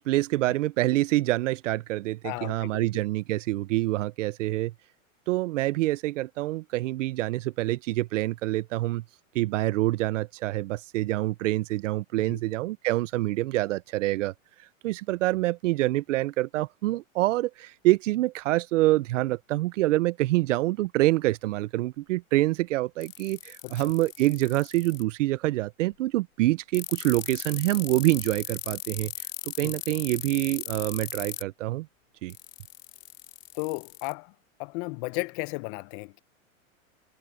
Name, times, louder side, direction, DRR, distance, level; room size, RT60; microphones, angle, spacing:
voice 1, 0.0-4.7 5.3-9.0 9.3-14.3 14.8-29.1 29.4-31.9 32.2-32.4, right 17 dB, 65° right, 0.8 m, -26 dB
voice 2, 2.2-2.9 12.3-12.4 23.6-23.9 29.6-29.7 33.5-34.3 34.6-36.2, left 27 dB, 40° left, 0.7 m, -34 dB
sound 1, 23.0-25.0 26.7-31.4 32.3-34.1, left 15 dB, 70° left, 2.7 m, -37 dB
hypercardioid pair, 125°, 41 cm